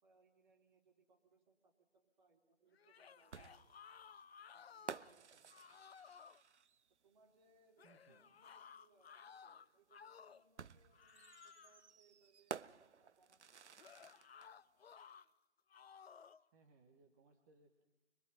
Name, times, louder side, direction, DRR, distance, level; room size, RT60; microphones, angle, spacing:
voice 1, 0.0-3.6 4.5-5.6 7.0-12.6 13.0-14.1, right 3 dB, 40° right, 2 dB, 3.5 m, -73 dB
sound 1, 2.7-5.2 5.5-6.4 7.8-10.5 10.9-11.9 13.8-15.3 15.7-16.4, left 7 dB, 60° left, 0.6 m, -58 dB
sound 2, 3.3-7.0 8.4-8.5 10.6-14.5, right 7 dB, 75° right, 0.7 m, -52 dB
voice 2, 7.8-8.3 16.5-17.8, right 3 dB, 15° right, 4 dB, 0.9 m, -68 dB
23.5 x 23.0 x 5.7 m, 1.1 s
figure-of-eight pair, 145°, 35 cm